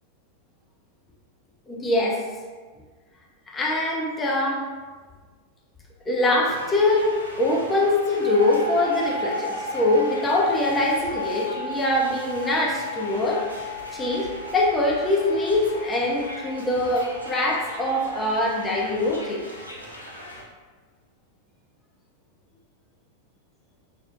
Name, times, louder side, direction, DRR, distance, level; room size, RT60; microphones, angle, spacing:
voice 1, 1.7-2.2 3.5-4.7 6.1-13.5 13.9-19.4, left 2 dB, 15° left, -3 dB, 0.4 m, -23 dB
sound 1, 6.4-20.4, equal, 85° left, 0.4 m, -41 dB
sound 2, 8.2-19.4, left 1 dB, 55° right, 0.9 m, -35 dB
2.7 x 2.0 x 2.3 m, 1.4 s
figure-of-eight pair, 90°, 0 cm